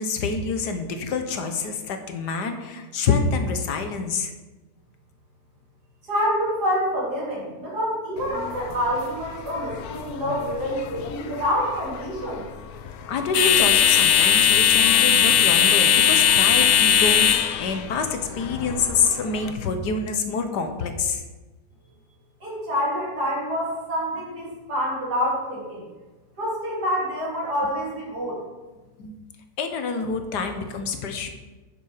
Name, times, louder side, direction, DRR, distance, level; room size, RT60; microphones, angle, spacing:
voice 1, 0.0-4.3 13.1-21.2 29.0-29.1 29.6-31.3, left 4 dB, 85° left, 7 dB, 1.6 m, -27 dB
voice 2, 6.1-12.5 22.4-25.9 26.4-28.4, equal, 75° right, -5 dB, 3.8 m, -27 dB
sound 1, 8.2-19.5, left 9 dB, 70° left, 1.1 m, -21 dB
9.7 x 7.0 x 5.0 m, 1.2 s
omnidirectional pair, 1.7 m